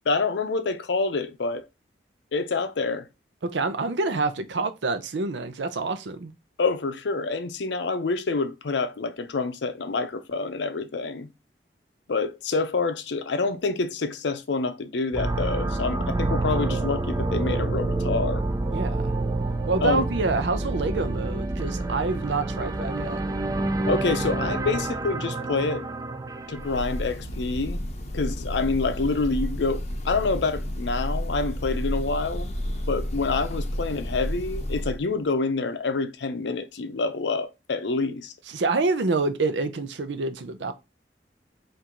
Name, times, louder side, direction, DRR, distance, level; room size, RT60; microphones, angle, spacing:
voice 1, 0.1-1.6 2.3-3.1 6.6-11.3 12.1-18.4 19.8-20.1 23.9-25.9 26.5-27.8 28.1-32.5 32.9-38.3, left 3 dB, 75° left, 0.6 m, -27 dB
voice 2, 3.4-6.3 18.7-19.2 19.7-23.2 38.5-40.7, right 3 dB, 85° right, 0.6 m, -27 dB
sound 1, 15.1-27.1, right 2 dB, 20° right, 0.4 m, -28 dB
Breathing / Bird, 26.5-35.1, equal, 40° left, 0.7 m, -31 dB
4.4 x 2.6 x 3.7 m
head